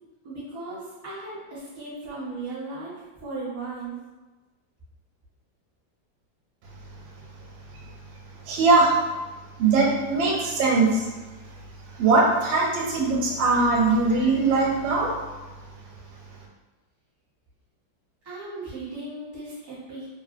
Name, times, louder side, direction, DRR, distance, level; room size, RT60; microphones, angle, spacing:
voice 1, 0.2-2.9 3.2-4.0 18.2-20.1, right 3 dB, 25° right, -9 dB, 1.0 m, -36 dB
voice 2, 8.5-8.9 9.6-11.1 12.0-15.1, right 3 dB, 90° right, -2 dB, 1.4 m, -21 dB
3.0 x 2.7 x 2.5 m, 1.2 s
omnidirectional pair, 2.1 m